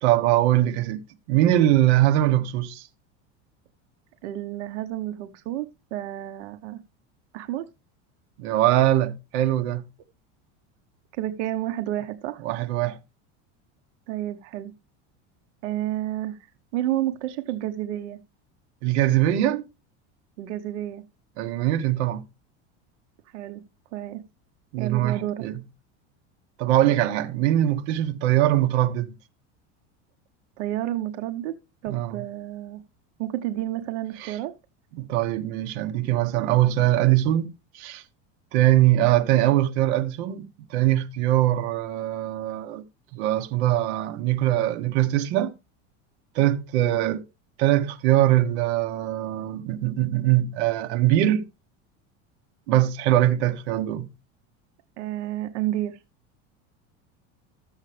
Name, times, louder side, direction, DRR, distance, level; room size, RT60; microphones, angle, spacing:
voice 1, 0.0-1.0 1.3-2.8 8.4-9.8 12.4-13.0 18.8-19.6 21.4-22.2 24.7-25.5 26.6-29.1 31.9-32.1 34.2-34.3 34.9-37.5 37.7-38.0 38.5-42.8 43.1-45.5 46.3-47.2 47.6-51.4 52.7-54.1, right 13 dB, 70° right, 1.2 m, -22 dB
voice 2, 4.2-6.8 7.3-7.7 11.2-12.4 14.1-14.7 15.6-16.4 16.7-18.2 20.4-21.0 23.3-23.6 23.9-24.2 24.8-25.5 30.6-31.6 31.8-32.8 33.2-34.5 46.9-47.2 55.0-56.0, right 13 dB, 90° right, 1.0 m, -30 dB
13.5 x 7.3 x 3.3 m
supercardioid pair, 160°, 34 cm